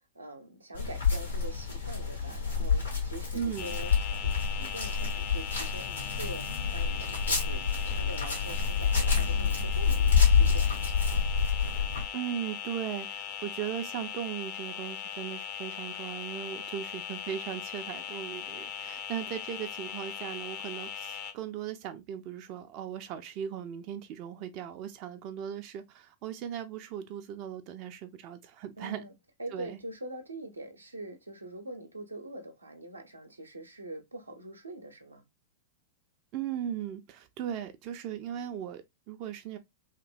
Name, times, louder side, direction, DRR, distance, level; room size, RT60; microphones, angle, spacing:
voice 1, 0.1-7.7 7.9-10.9 28.8-29.1 29.4-35.2, right 1 dB, 85° right, 0.6 m, -44 dB
sound 1, 0.7-12.1, left 6 dB, 85° left, 1.4 m, -28 dB
voice 2, 3.3-3.8 12.1-29.0 29.5-29.8 36.3-39.6, right 9 dB, 40° right, 0.3 m, -38 dB
sound 2, 3.6-21.3, left 8 dB, 45° left, 0.6 m, -39 dB
2.9 x 2.6 x 2.4 m
figure-of-eight pair, 95°, 0 cm